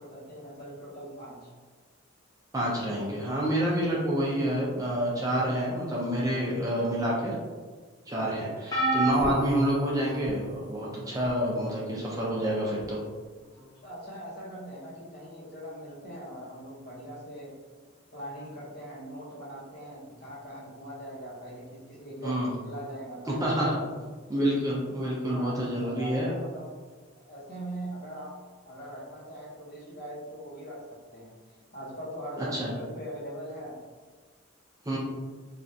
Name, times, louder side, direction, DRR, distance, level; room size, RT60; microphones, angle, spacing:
voice 1, 0.0-1.5 13.8-17.5 18.1-24.0 25.3-26.7 27.2-28.3 28.7-30.8 31.1-31.4 31.7-33.8, right 1 dB, 50° left, -6 dB, 0.9 m, -41 dB
voice 2, 2.5-7.3 8.1-13.0 22.2-22.5 23.3-23.8 24.3-26.3 32.4-32.7 34.9-35.0, right 1 dB, 15° right, -5 dB, 0.4 m, -28 dB
sound 1, 8.7-10.5 11.2-11.5 12.8-12.9, right 1 dB, 20° left, 0.7 m, -29 dB
3.2 x 2.4 x 2.6 m, 1.4 s
head